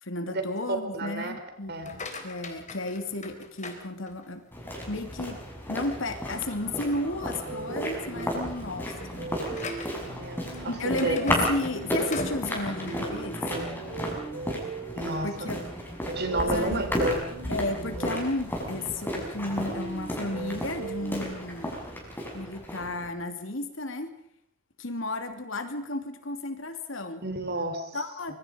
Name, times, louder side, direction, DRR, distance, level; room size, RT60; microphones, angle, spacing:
voice 1, 0.0-4.4 4.9-5.4 5.7-9.3 10.7-13.7 15.2-15.7 16.5-16.9 17.5-21.7 22.3-24.1 24.8-27.2 27.9-28.3, left 2 dB, 70° left, 7 dB, 2.8 m, -33 dB
voice 2, 0.9-1.3 1.7-1.9 10.2-11.2 15.0-15.6 16.1-17.2 27.2-28.0 28.3-28.4, right 1 dB, 55° right, 6 dB, 4.1 m, -31 dB
sound 1, 1.7-4.5 5.0-5.4 5.9-6.0 6.4-6.6 7.3-7.5 7.9-13.7, left 2 dB, 40° left, 3.9 m, -39 dB
sound 2, 4.5-23.1, equal, 10° left, 6.3 m, -34 dB
sound 3, 7.4-21.2, right 3 dB, 70° right, 5.5 m, -40 dB
25.0 x 24.5 x 5.2 m, 0.69 s
head